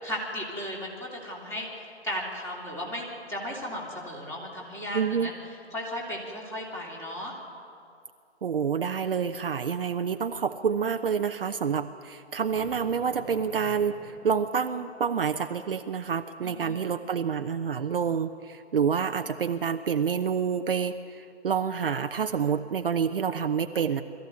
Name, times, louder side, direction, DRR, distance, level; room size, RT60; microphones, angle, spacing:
voice 1, 0.0-5.3 5.7-7.3 16.4-16.8, equal, 5° left, -2 dB, 2.9 m, -35 dB
voice 2, 4.9-5.3 8.4-24.0, right 6 dB, 55° right, 8 dB, 0.8 m, -28 dB
Thunder, 12.5-15.1, left 2 dB, 30° left, 3.7 m, -48 dB
22.0 x 14.0 x 9.5 m, 2.4 s
figure-of-eight pair, 145°, 34 cm